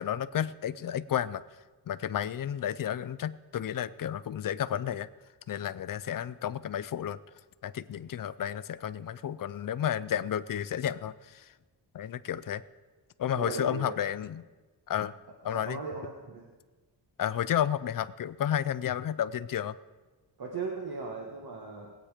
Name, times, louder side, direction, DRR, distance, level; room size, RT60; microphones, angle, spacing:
voice 1, 0.0-1.4 1.9-5.1 5.5-7.2 7.6-11.4 11.9-12.6 13.2-14.4 14.9-15.1 15.4-15.8 17.2-19.7, left 10 dB, 50° left, 15 dB, 0.5 m, -32 dB
voice 2, 13.3-14.0 15.4-16.5 20.4-21.9, right 4 dB, 55° right, 0 dB, 1.6 m, -38 dB
20.0 x 8.9 x 5.0 m, 1.3 s
wide cardioid pair, 160°, 43 cm